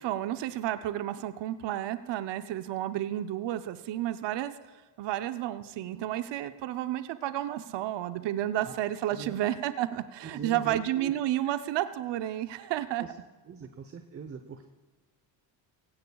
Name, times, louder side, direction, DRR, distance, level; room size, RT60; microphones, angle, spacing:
voice 1, 0.0-4.5 5.0-13.0, right 13 dB, 65° right, 11 dB, 0.7 m, -31 dB
voice 2, 8.4-8.8 9.1-9.4 10.2-11.6 13.0-13.1 13.4-14.7, right 6 dB, 30° right, 7 dB, 0.9 m, -42 dB
17.5 x 15.5 x 2.3 m, 1.3 s
supercardioid pair, 75°, 46 cm